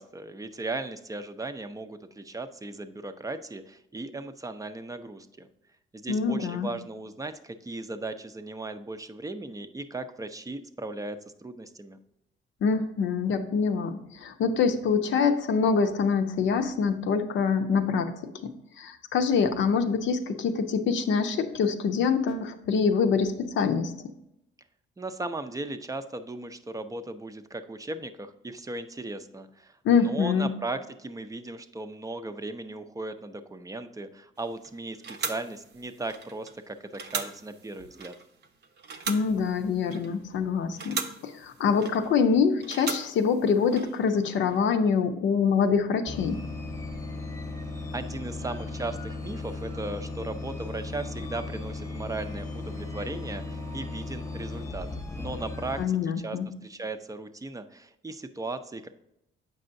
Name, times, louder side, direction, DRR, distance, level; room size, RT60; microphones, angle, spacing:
voice 1, 0.0-5.5 5.9-12.0 25.0-38.1 47.9-54.9 55.2-55.8 56.2-58.9, right 2 dB, 15° right, 9 dB, 0.5 m, -37 dB
voice 2, 6.1-6.7 12.6-24.1 29.8-30.5 39.1-46.5 55.8-56.5, left 5 dB, 70° left, 7 dB, 0.6 m, -25 dB
sound 1, 34.4-44.6, right 5 dB, 60° right, 0.7 m, -39 dB
sound 2, 46.1-55.8, left 2 dB, 15° left, 0.7 m, -36 dB
7.7 x 5.4 x 2.6 m, 0.82 s
cardioid pair, 90°, 20 cm